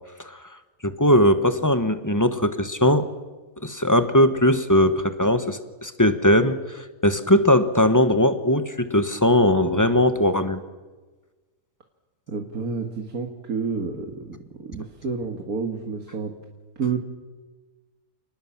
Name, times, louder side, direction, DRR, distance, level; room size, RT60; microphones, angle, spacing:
voice 1, 0.2-0.5 0.8-3.1 3.6-10.6, left 1 dB, 15° left, 10 dB, 1.2 m, -20 dB
voice 2, 12.3-16.4 16.8-17.0, right 5 dB, 70° right, 4 dB, 2.3 m, -29 dB
29.5 x 19.5 x 7.4 m, 1.3 s
omnidirectional pair, 1.6 m